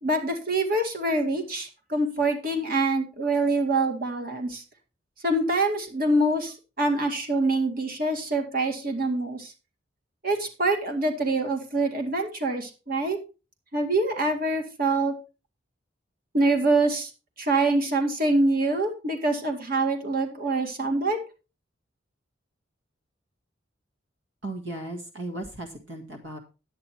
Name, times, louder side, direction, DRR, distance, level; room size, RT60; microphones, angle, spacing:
voice 1, 0.0-4.6 5.2-9.5 10.2-13.2 13.7-15.1 16.3-17.1 17.4-21.2, right 2 dB, 50° right, 4 dB, 2.0 m, -25 dB
voice 2, 24.4-26.4, right 2 dB, 70° right, 4 dB, 1.8 m, -36 dB
10.0 x 8.8 x 4.3 m, 0.31 s
head